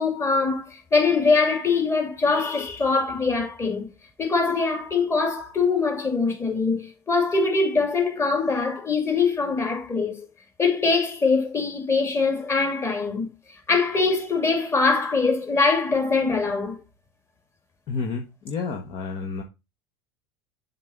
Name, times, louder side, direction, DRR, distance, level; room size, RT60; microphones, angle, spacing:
voice 1, 0.0-3.9 4.2-10.3 10.6-16.8, left 4 dB, 20° left, 2.7 m, -23 dB
voice 2, 17.9-19.4, left 4 dB, 45° left, 1.2 m, -30 dB
7.4 x 4.0 x 4.4 m
hypercardioid pair, 85°, 12 cm